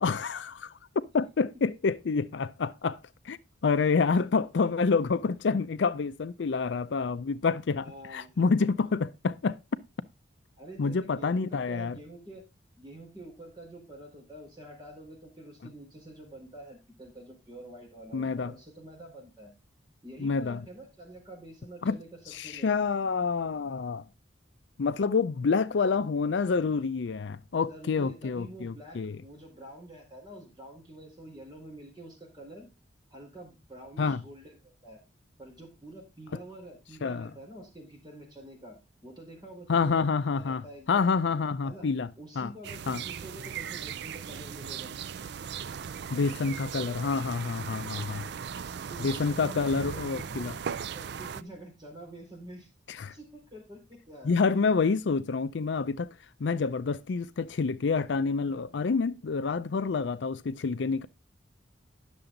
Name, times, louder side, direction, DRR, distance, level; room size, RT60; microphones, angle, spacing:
voice 1, 0.0-0.8 1.1-3.0 3.2-9.6 10.8-12.0 18.1-18.5 20.2-20.6 21.8-22.0 22.3-24.1 24.8-29.2 34.0-34.2 37.0-37.3 39.7-42.1 42.4-42.5 42.9-43.0 46.1-48.3 49.0-50.5 52.9-53.1 54.2-56.1 56.4-61.1, left 4 dB, 65° left, 0.5 m, -28 dB
voice 2, 7.8-8.4 10.6-12.4 12.8-19.5 20.0-22.7 27.7-32.7 33.1-35.0 35.4-40.0 40.3-41.0 41.6-41.9 42.2-44.9 48.7-52.7 53.1-54.3, right 1 dB, 20° right, 4.7 m, -47 dB
sound 1, 42.6-51.4, right 7 dB, 60° right, 0.4 m, -38 dB
10.5 x 6.8 x 3.8 m
head